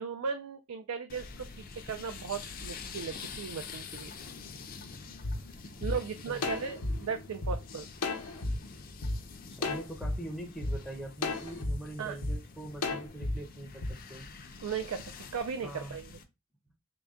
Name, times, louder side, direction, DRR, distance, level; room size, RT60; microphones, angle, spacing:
voice 1, 0.0-4.1 5.8-7.9 12.0-12.2 14.6-15.0 15.3-16.1, right 6 dB, 80° right, 8 dB, 0.4 m, -37 dB
sound 1, 1.1-16.2, left 4 dB, 40° left, 0.5 m, -47 dB
sound 2, 5.2-5.3 5.8-5.9 6.4-7.5 8.0-8.5 9.0-9.1 9.6-10.1 10.6-10.7 11.2-11.7 12.2-12.4 12.8-13.3 13.8-13.9, left 2 dB, 85° left, 0.8 m, -32 dB
voice 2, 9.5-14.3 15.6-16.0, right 1 dB, ahead, 2 dB, 0.6 m, -43 dB
3.8 x 2.2 x 3.5 m, 0.23 s
head